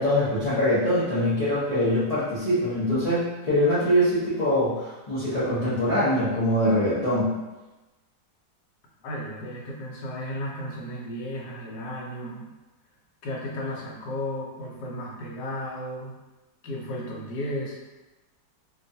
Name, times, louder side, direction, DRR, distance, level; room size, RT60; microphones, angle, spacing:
voice 1, 0.0-7.3, equal, 60° left, -13 dB, 0.4 m, -23 dB
voice 2, 9.0-12.5 13.2-16.1 16.6-17.8, left 1 dB, 90° left, -2 dB, 1.3 m, -34 dB
2.9 x 2.3 x 2.6 m, 1.1 s
omnidirectional pair, 1.8 m